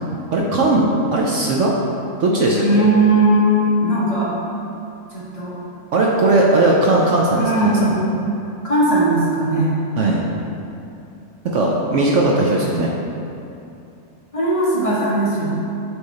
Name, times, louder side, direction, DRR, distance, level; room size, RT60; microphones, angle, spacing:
voice 1, 0.3-1.7 2.2-2.6 5.9-7.9 10.0-10.2 11.4-12.9, right 2 dB, 65° right, -2 dB, 0.8 m, -17 dB
voice 2, 2.6-4.3 5.1-5.6 7.3-8.1 8.6-9.8 14.3-15.5, right 1 dB, 25° left, -9 dB, 1.1 m, -18 dB
7.8 x 3.5 x 4.1 m, 2.7 s
omnidirectional pair, 1.7 m